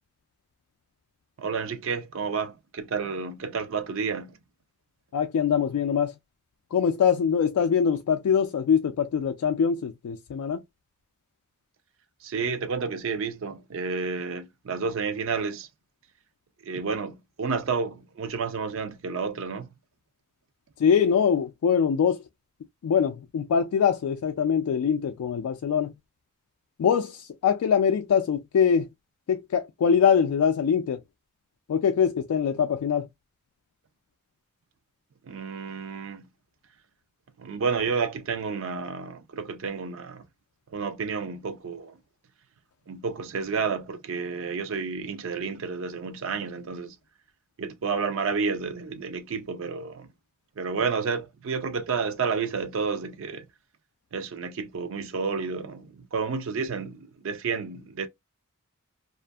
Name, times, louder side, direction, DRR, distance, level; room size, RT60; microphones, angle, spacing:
voice 1, 1.4-4.4 12.2-15.7 16.6-19.7 35.2-36.3 37.4-40.2 40.7-42.0 42.9-47.0 47.6-50.1 50.6-53.4 54.1-58.1, right 5 dB, 65° right, 0.4 m, -30 dB
voice 2, 5.1-6.1 6.7-10.6 20.8-22.2 22.8-25.9 26.8-28.9 29.3-31.0 31.7-33.1, left 7 dB, 85° left, 0.3 m, -23 dB
2.5 x 2.4 x 2.2 m
head